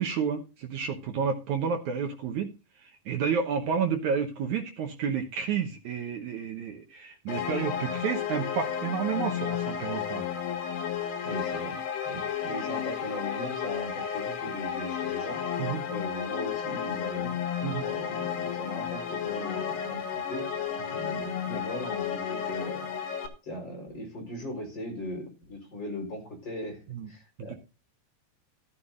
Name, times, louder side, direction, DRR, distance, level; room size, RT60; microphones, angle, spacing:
voice 1, 0.0-2.5 2.8-10.3 15.6-15.8 17.6-17.9 26.9-27.1 27.4-27.5, right 6 dB, 80° right, 4 dB, 1.6 m, -30 dB
sound 1, 7.3-23.3, left 8 dB, 70° left, 3.8 m, -32 dB
voice 2, 11.2-15.4 15.9-17.4 17.8-20.5 20.9-22.9 23.4-27.6, left 1 dB, 25° left, 1 dB, 4.5 m, -39 dB
14.0 x 13.0 x 2.5 m, 0.29 s
omnidirectional pair, 5.0 m